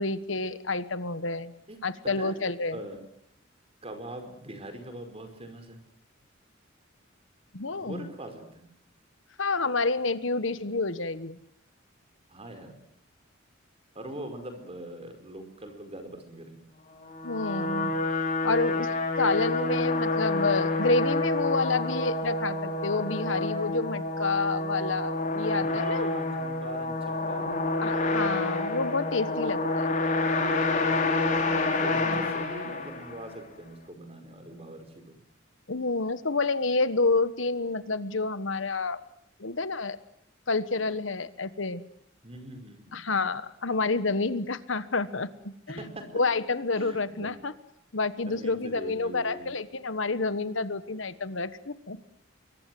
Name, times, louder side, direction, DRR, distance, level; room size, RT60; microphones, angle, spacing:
voice 1, 0.0-1.5 1.8-2.8 7.5-8.1 9.4-11.4 17.2-17.9 18.4-26.1 27.8-29.9 32.1-32.5 35.7-39.0 39.4-40.0 40.5-41.8 42.9-45.8 46.1-47.5 47.9-52.0, left 3 dB, 70° left, 13 dB, 1.4 m, -29 dB
voice 2, 2.2-3.0 3.8-5.8 7.7-8.4 12.3-12.7 13.9-16.6 25.6-27.6 31.5-35.2 42.2-43.0 45.7-46.1 46.5-47.4 48.2-49.5, right 1 dB, 30° right, 7 dB, 5.0 m, -42 dB
sound 1, 17.0-33.3, left 2 dB, 40° left, 4.9 m, -28 dB
26.0 x 23.0 x 7.9 m, 0.74 s
head